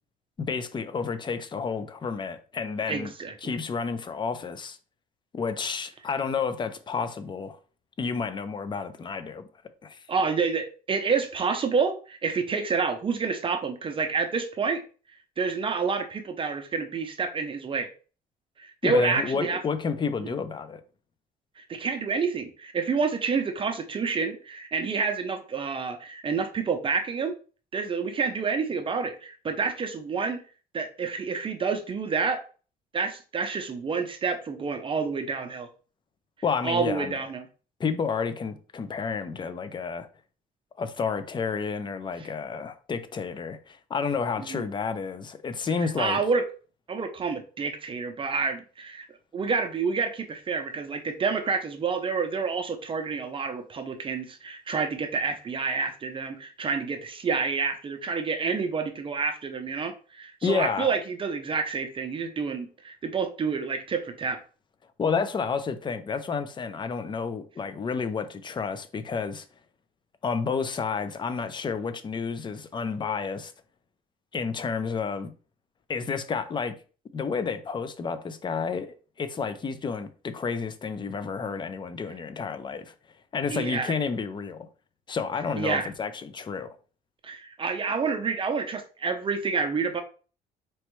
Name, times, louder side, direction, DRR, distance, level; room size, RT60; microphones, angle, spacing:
voice 1, 0.4-3.1 3.4-4.8 5.3-7.6 8.0-9.5 9.8-10.0 18.8-20.8 36.4-37.2 37.8-40.1 40.8-46.2 60.4-60.9 65.0-69.5 70.2-73.5 74.3-75.3 75.9-76.8 77.1-82.9 83.3-84.7 85.1-86.8, left 5 dB, 25° left, 0.5 m, -30 dB
voice 2, 2.9-3.3 10.1-14.8 15.4-17.9 18.6-19.6 20.2-20.3 21.6-27.4 27.7-30.4 30.7-32.4 32.9-35.7 36.6-37.5 42.2-42.3 44.5-44.6 46.0-46.4 46.9-49.1 49.3-64.4 83.5-83.9 85.6-85.9 87.2-90.0, right 5 dB, 30° right, 0.6 m, -28 dB
4.4 x 3.1 x 3.1 m
cardioid pair, 110°, 17 cm